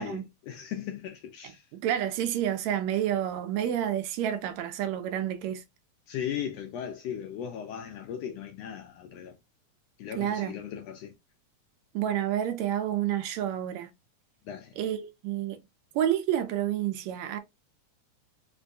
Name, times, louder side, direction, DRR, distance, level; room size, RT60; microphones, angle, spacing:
voice 1, 0.0-1.6 6.1-9.3 10.0-11.1 14.5-14.7, left 9 dB, 75° left, 1.6 m, -37 dB
voice 2, 1.7-5.6 10.2-10.6 11.9-13.9 14.8-15.6 15.9-17.4, right 11 dB, 80° right, 1.8 m, -29 dB
5.2 x 2.2 x 2.5 m
omnidirectional pair, 3.4 m